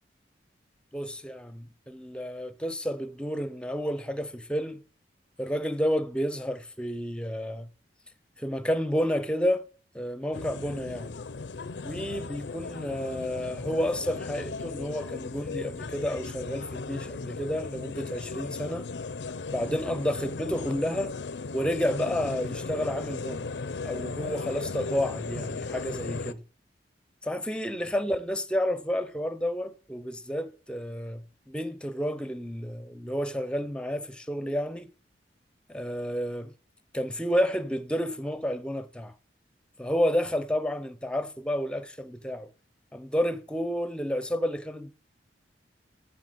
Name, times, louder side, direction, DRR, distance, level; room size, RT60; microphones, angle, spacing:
voice 1, 0.9-4.8 5.4-7.7 8.4-9.6 9.9-11.1 11.8-18.9 19.5-21.1 21.5-23.5 23.8-26.4 27.2-34.9 35.7-36.5 36.9-39.1 39.8-42.5 42.9-44.9, equal, 5° left, 0.7 m, -30 dB
sound 1, 10.3-26.3, left 4 dB, 80° left, 0.6 m, -36 dB
9.5 x 7.2 x 7.7 m
head